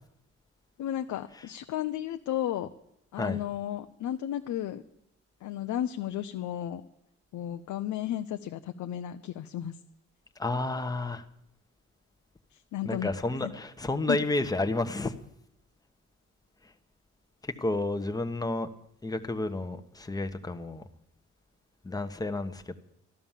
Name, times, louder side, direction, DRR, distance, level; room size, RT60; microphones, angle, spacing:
voice 1, 0.8-2.7 3.1-4.8 5.4-6.8 7.3-9.7 12.7-13.1 14.1-14.2, left 11 dB, 75° left, 7 dB, 0.7 m, -33 dB
voice 2, 10.4-11.2 12.8-15.2 17.4-18.7 19.0-20.8 21.8-22.8, left 2 dB, 10° left, 7 dB, 1.1 m, -31 dB
13.0 x 12.5 x 7.4 m, 0.79 s
cardioid pair, 90°, 30 cm